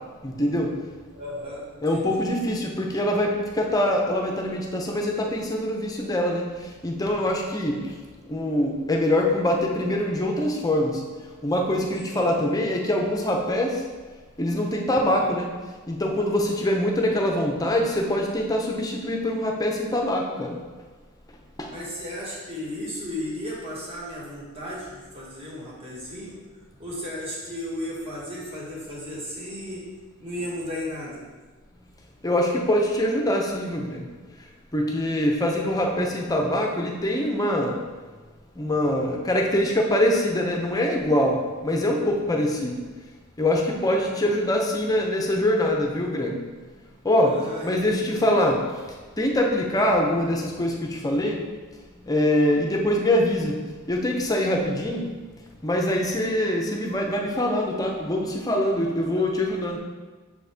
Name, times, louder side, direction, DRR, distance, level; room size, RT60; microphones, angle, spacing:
voice 1, 0.2-0.7 1.8-6.4 6.8-7.8 8.3-10.9 11.4-13.7 14.4-15.5 15.9-20.5 32.2-34.0 34.7-37.8 38.6-41.4 41.6-42.7 43.4-46.4 47.0-47.3 47.6-48.6 49.2-51.4 52.1-53.5 53.9-55.0 55.6-59.8, left 1 dB, 15° left, 1 dB, 0.6 m, -24 dB
voice 2, 1.1-2.3 7.8-8.1 12.1-12.5 15.1-15.3 21.7-26.3 26.8-29.8 30.2-31.3 43.8-44.2 47.2-48.5 49.7-49.9 59.1-59.5, left 1 dB, 25° right, -5 dB, 1.5 m, -35 dB
6.7 x 4.0 x 3.5 m, 1.4 s
head